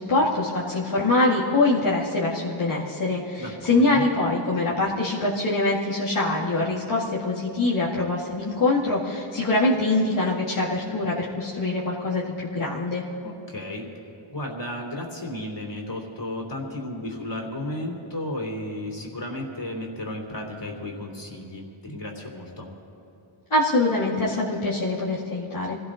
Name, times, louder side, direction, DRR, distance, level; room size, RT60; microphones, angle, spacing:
voice 1, 0.0-13.0 23.5-25.8, left 2 dB, 85° left, -9 dB, 2.3 m, -24 dB
voice 2, 3.4-4.0 13.2-13.9 14.3-22.7, left 1 dB, 60° left, -1 dB, 3.4 m, -34 dB
27.0 x 17.5 x 2.6 m, 2.8 s
wide cardioid pair, 65°, 49 cm